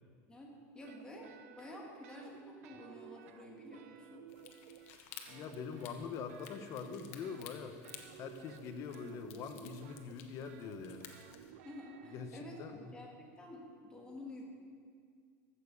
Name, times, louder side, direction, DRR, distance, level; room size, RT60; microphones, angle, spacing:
voice 1, 0.3-4.2 11.6-12.6 12.9-14.4, left 1 dB, 10° left, -1 dB, 1.9 m, -50 dB
sound 1, 0.8-2.4 2.6-5.0 5.2-12.9, right 10 dB, 90° right, 0.8 m, -55 dB
sound 2, 4.3-11.5, left 8 dB, 70° left, 1.2 m, -55 dB
voice 2, 5.3-7.8 8.2-11.1 12.1-12.9, left 6 dB, 40° left, 8 dB, 0.9 m, -44 dB
15.0 x 7.0 x 5.4 m, 2.1 s
supercardioid pair, 150°, 8 cm